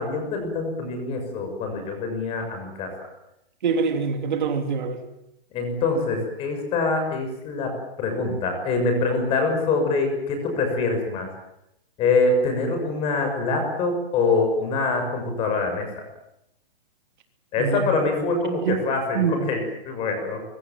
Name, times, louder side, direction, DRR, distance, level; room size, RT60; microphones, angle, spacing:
voice 1, 0.0-2.9 5.5-11.3 12.0-15.9 17.5-20.4, left 3 dB, 20° left, 5 dB, 6.6 m, -24 dB
voice 2, 3.6-5.0 17.6-17.8 18.6-18.8 19.1-19.5, right 6 dB, 50° right, 5 dB, 3.3 m, -24 dB
25.0 x 24.5 x 7.7 m, 0.83 s
hypercardioid pair, 170°, 31 cm